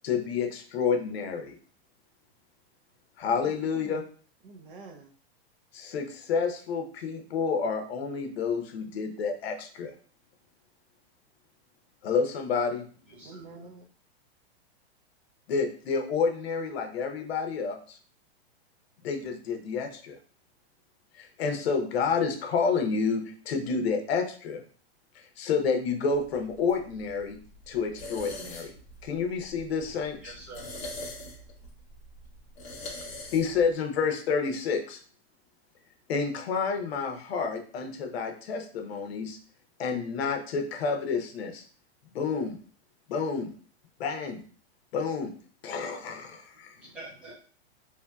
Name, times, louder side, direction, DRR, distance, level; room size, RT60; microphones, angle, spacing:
voice 1, 0.0-1.6 3.2-4.0 5.7-9.9 12.0-12.8 15.5-18.0 19.0-20.2 21.1-24.6 25.1-27.4 27.7-28.7 29.0-30.3 33.3-35.0 36.1-39.4 39.8-41.6 42.1-42.6 43.1-43.5 44.0-44.4 44.9-45.3 45.6-46.7, left 5 dB, 70° left, 5 dB, 0.7 m, -29 dB
voice 2, 3.4-4.1 4.4-5.1 13.2-13.9, right 3 dB, 55° right, 4 dB, 0.6 m, -47 dB
voice 3, 13.1-13.5 29.9-30.8 46.7-47.3, right 2 dB, 5° right, -7 dB, 0.4 m, -46 dB
sound 1, 26.1-33.7, left 1 dB, 20° left, 0.8 m, -43 dB
3.1 x 2.7 x 2.2 m, 0.43 s
supercardioid pair, 170°, 32 cm